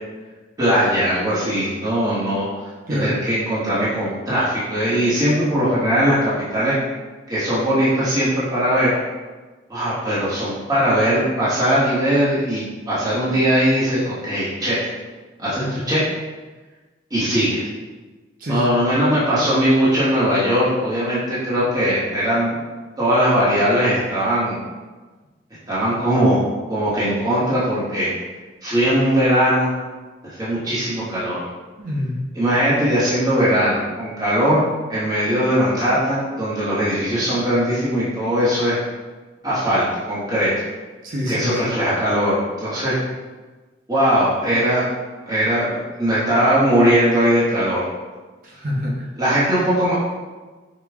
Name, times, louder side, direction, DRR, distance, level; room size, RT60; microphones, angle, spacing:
voice 1, 0.6-2.5 2.9-6.8 7.3-9.0 9.7-14.9 15.4-16.0 17.1-17.7 18.5-22.6 23.0-24.6 25.7-26.4 26.7-28.1 28.6-29.7 30.4-31.5 32.3-34.6 34.9-38.8 39.4-40.5 41.3-43.0 43.9-44.8 45.3-47.8 49.2-49.9, equal, 20° right, -11 dB, 1.1 m, -20 dB
voice 2, 18.4-18.7 31.8-32.2 41.0-41.7 48.4-49.1, left 1 dB, 50° right, -3 dB, 0.7 m, -25 dB
5.0 x 2.3 x 3.5 m, 1.3 s
head